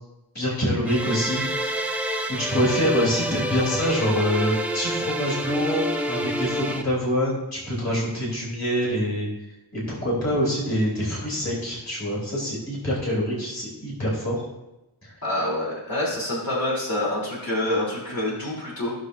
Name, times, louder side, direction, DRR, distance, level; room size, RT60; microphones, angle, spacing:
voice 1, 0.3-2.0 2.3-9.3 9.7-14.4 15.0-15.1, equal, 40° left, -5 dB, 3.6 m, -25 dB
sound 1, 0.9-6.8, right 1 dB, 5° right, 0.8 m, -28 dB
voice 2, 15.2-18.9, left 1 dB, 55° left, -7 dB, 3.5 m, -26 dB
16.5 x 6.4 x 2.7 m, 0.95 s
wide cardioid pair, 90°, 41 cm